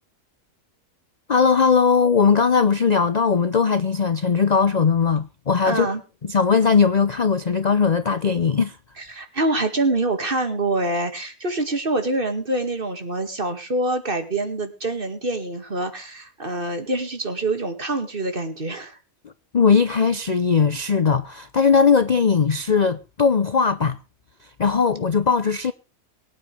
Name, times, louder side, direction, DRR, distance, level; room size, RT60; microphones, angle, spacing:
voice 1, 1.3-5.9 6.2-8.8 19.5-24.0 24.6-25.7, left 5 dB, 40° left, 0.6 m, -19 dB
voice 2, 5.6-6.0 9.0-19.0, right 2 dB, 40° right, 2.3 m, -25 dB
23.0 x 9.4 x 3.4 m
omnidirectional pair, 1.5 m